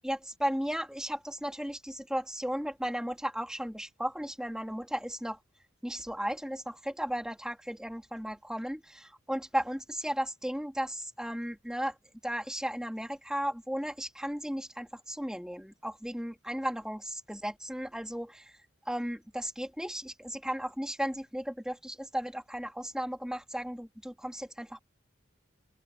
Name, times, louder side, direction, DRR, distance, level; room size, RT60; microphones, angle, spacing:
voice 1, 0.0-5.4 5.8-11.9 12.2-18.6 18.8-24.8, equal, 5° right, 3.5 m, -35 dB
open air
head